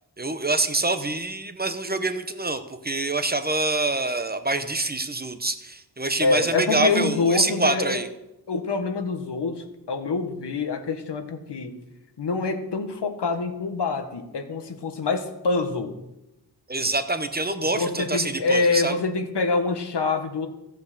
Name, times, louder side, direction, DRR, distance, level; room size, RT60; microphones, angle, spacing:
voice 1, 0.2-8.1 16.7-18.9, right 2 dB, 25° right, 9 dB, 0.9 m, -26 dB
voice 2, 6.2-8.0 8.5-11.8 12.2-16.0 17.7-20.5, left 4 dB, 90° left, 6 dB, 1.5 m, -26 dB
14.0 x 8.1 x 6.7 m, 0.93 s
wide cardioid pair, 100°, 40 cm